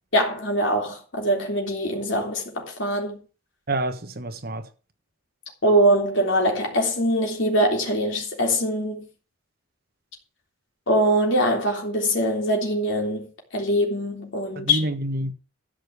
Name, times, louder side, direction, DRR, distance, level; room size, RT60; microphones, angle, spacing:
voice 1, 0.1-3.2 5.6-9.1 10.9-14.8, equal, 60° left, 3.5 m, -23 dB
voice 2, 3.7-4.7 14.5-15.3, right 1 dB, 45° right, 1.3 m, -28 dB
13.0 x 5.3 x 8.1 m
head